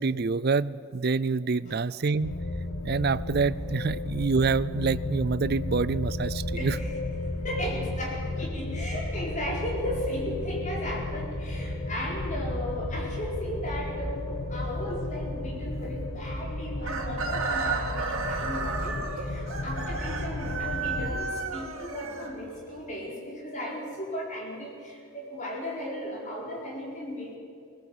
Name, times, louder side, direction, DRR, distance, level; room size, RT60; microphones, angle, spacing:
voice 1, 0.0-2.4 2.8-6.8, right 4 dB, 45° right, 18 dB, 0.4 m, -26 dB
sound 1, 2.2-21.2, left 2 dB, 75° left, 1.5 m, -33 dB
voice 2, 6.6-6.9 7.4-27.4, equal, 35° left, -2 dB, 4.5 m, -36 dB
Chicken rooster, 16.8-22.8, right 4 dB, 70° right, 2.7 m, -33 dB
20.5 x 19.5 x 8.0 m, 2.5 s
head